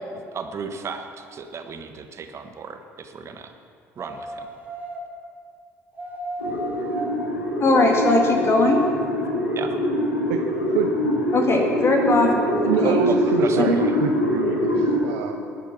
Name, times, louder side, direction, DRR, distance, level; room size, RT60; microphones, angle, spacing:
voice 1, 0.3-3.5 4.0-4.5 9.6-9.7 12.8-13.9, right 5 dB, 40° right, 6 dB, 1.4 m, -33 dB
sound 1, 4.0-5.0 6.0-7.1 7.7-9.0 9.6-9.7, right 1 dB, 20° right, 2.7 m, -33 dB
sound 2, 6.4-15.0, equal, 85° left, 1.9 m, -24 dB
voice 2, 7.6-8.8 11.3-13.0 13.6-13.7, left 2 dB, 35° left, 2 dB, 1.9 m, -20 dB
voice 3, 10.7-11.2 12.7-15.6, right 6 dB, 70° right, 4 dB, 0.7 m, -26 dB
19.5 x 8.2 x 6.0 m, 2.3 s
figure-of-eight pair, 55°, 7 cm